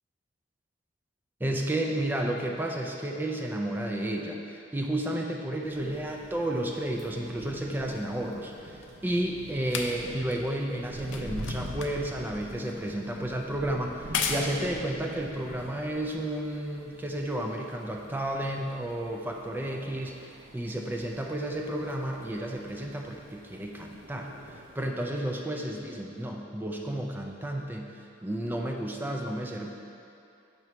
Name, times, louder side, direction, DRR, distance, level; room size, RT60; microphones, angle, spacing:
voice 1, 1.4-24.3 24.8-27.9 28.2-29.7, right 1 dB, 10° right, 1 dB, 0.3 m, -32 dB
sound 1, 5.6-24.9, right 1 dB, 45° right, 0.6 m, -45 dB
sound 2, 8.8-16.4 17.3-17.4, left 5 dB, 65° left, 0.5 m, -38 dB
6.6 x 3.1 x 5.7 m, 2.7 s
head